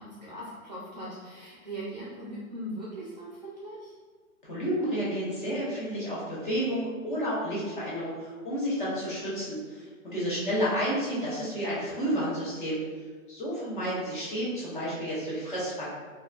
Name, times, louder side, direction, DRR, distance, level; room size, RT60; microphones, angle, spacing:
voice 1, 0.0-3.9 10.1-10.7, right 1 dB, 30° right, -7 dB, 0.5 m, -40 dB
voice 2, 4.4-12.8 13.3-15.8, equal, 35° left, -8 dB, 1.0 m, -31 dB
3.9 x 2.2 x 2.4 m, 1.5 s
hypercardioid pair, 175°, 43 cm